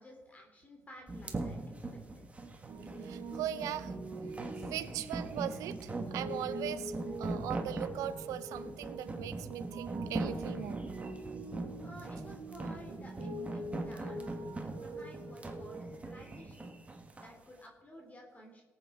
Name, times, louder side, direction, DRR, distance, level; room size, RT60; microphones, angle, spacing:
voice 1, 0.0-1.6 2.1-2.2 11.8-16.7 17.2-18.6, equal, 25° left, 1 dB, 2.8 m, -54 dB
sound 1, 1.1-17.3, right 2 dB, 25° right, 1.9 m, -41 dB
Piano, 2.7-16.4, right 2 dB, 65° right, 2.1 m, -44 dB
voice 2, 3.0-3.9 4.6-10.8, right 11 dB, 85° right, 14 dB, 0.6 m, -39 dB
18.0 x 8.6 x 4.2 m, 1.3 s
cardioid pair, 80°, 6 cm